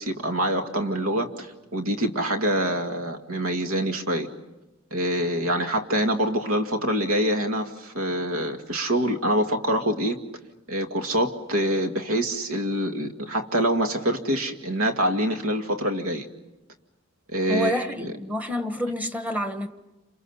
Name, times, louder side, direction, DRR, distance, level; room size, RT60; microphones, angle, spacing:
voice 1, 0.0-1.5 1.7-4.3 4.9-10.2 10.7-16.3 17.3-18.1, right 1 dB, 80° right, 2.1 m, -25 dB
voice 2, 17.5-19.7, left 1 dB, 10° right, 1.3 m, -28 dB
29.0 x 27.5 x 5.6 m
head